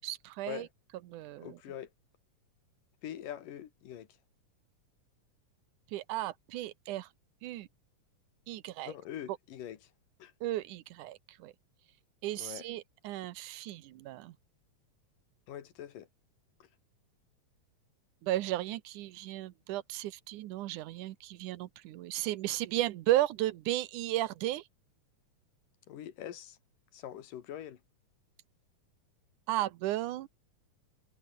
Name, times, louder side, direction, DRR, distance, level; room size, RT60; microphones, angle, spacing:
voice 1, 0.0-0.7 1.1-1.6 5.9-7.1 7.4-7.7 8.5-8.9 10.4-11.5 12.2-14.4 18.2-24.7 29.5-30.3, right 15 dB, 80° right, 2.3 m, -34 dB
voice 2, 1.4-1.9 3.0-4.1 8.8-9.8 10.2-10.3 12.4-12.6 15.5-16.1 16.6-16.7 25.9-26.6 26.9-27.8, left 10 dB, 90° left, 3.4 m, -43 dB
omnidirectional pair, 3.7 m